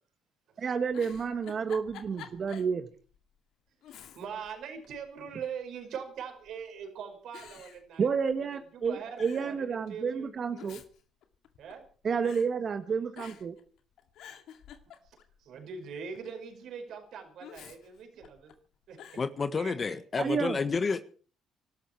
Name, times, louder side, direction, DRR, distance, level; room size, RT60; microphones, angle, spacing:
voice 1, 0.6-2.9 8.0-10.8 12.0-13.6 20.2-20.6, right 6 dB, 45° right, 8 dB, 1.6 m, -30 dB
Giggle, 0.8-2.8 3.1-3.2 3.8-4.5 4.8-5.6 6.4-6.8 7.3-8.6 8.8-8.9 9.2-9.6 10.4-11.9 12.2-12.5 13.1-13.6 14.0-15.4 17.4-18.5 19.0-19.3, left 9 dB, 75° left, 2.2 m, -50 dB
voice 2, 3.9-10.6 11.6-11.8 15.0-18.5 18.9-19.2 19.6-19.9, right 6 dB, 70° right, 4 dB, 5.5 m, -42 dB
voice 3, 19.2-21.0, left 4 dB, 35° left, 11 dB, 1.5 m, -30 dB
24.0 x 12.5 x 4.7 m, 0.41 s
supercardioid pair, 75°, 0 cm